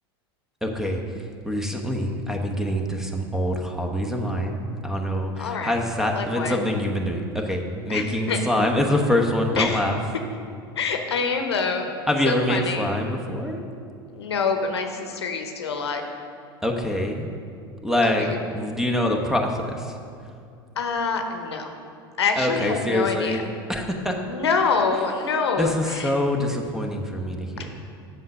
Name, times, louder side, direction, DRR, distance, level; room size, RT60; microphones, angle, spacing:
voice 1, 0.6-1.0 1.4-10.0 12.1-13.6 16.6-17.3 17.8-18.3 18.5-20.0 22.4-23.4 23.7-24.1 25.6-27.8, left 1 dB, 5° right, 2 dB, 1.0 m, -25 dB
voice 2, 5.4-5.8 6.1-6.6 7.9-8.4 9.6-9.8 10.7-11.8 12.2-12.9 14.1-16.0 18.0-18.4 20.8-21.7 22.2-23.4 24.3-26.2 27.6-27.8, left 5 dB, 85° left, 5 dB, 0.9 m, -26 dB
7.7 x 6.6 x 5.5 m, 2.4 s
hypercardioid pair, 90°, 13 cm